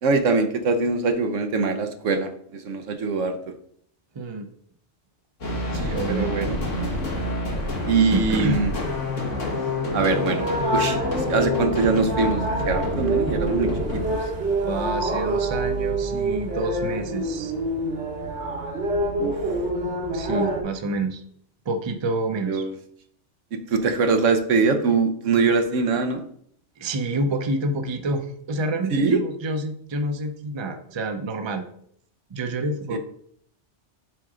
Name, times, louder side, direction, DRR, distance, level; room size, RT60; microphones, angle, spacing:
voice 1, 0.0-3.4 5.9-6.6 7.8-8.7 9.9-11.0 11.3-13.7 14.1-14.2 19.2-19.4 22.4-22.7 23.5-26.3 28.9-29.2 32.9-33.0, right 4 dB, 85° right, 7 dB, 1.3 m, -23 dB
voice 2, 4.1-4.5 5.7-6.4 8.1-8.6 14.7-17.5 20.1-21.2 21.7-22.6 26.8-31.6 32.3-33.0, right 2 dB, 30° right, 6 dB, 0.6 m, -28 dB
sound 1, 5.4-14.1, left 2 dB, 85° left, 2.2 m, -28 dB
sound 2, 10.0-20.6, right 1 dB, 65° right, 1.5 m, -27 dB
7.5 x 3.8 x 4.9 m, 0.64 s
omnidirectional pair, 1.3 m